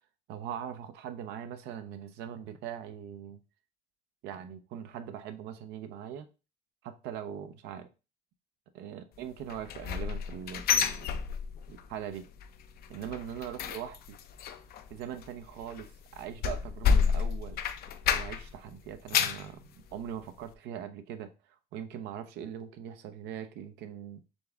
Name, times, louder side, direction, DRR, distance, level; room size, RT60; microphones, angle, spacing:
voice 1, 0.3-3.4 4.2-6.3 6.8-7.9 8.7-11.1 11.7-12.3 12.9-14.2 14.9-17.6 18.1-21.3 21.7-24.2, right 9 dB, 85° right, 0.6 m, -41 dB
sound 1, 9.5-11.8 12.1-12.5 12.8-18.6 18.9-19.5 20.0-20.1 20.5-20.6, left 7 dB, 65° left, 0.5 m, -30 dB
4.0 x 3.4 x 3.4 m
cardioid pair, 110°, 17 cm